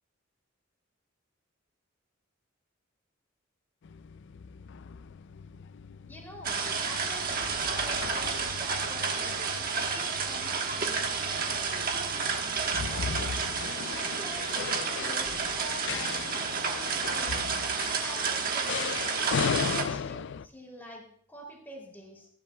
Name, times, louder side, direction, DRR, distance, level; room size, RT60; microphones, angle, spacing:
sound 1, 3.8-20.5, left 7 dB, 60° left, 0.4 m, -38 dB
voice 1, 6.1-9.4 9.8-11.1 11.5-12.6 12.9-13.5 13.9-17.5 17.9-18.9 19.5-22.3, equal, 10° left, 0 dB, 2.9 m, -47 dB
sound 2, 6.4-19.8, right 5 dB, 45° right, 1.3 m, -31 dB
19.5 x 10.5 x 2.3 m, 0.62 s
head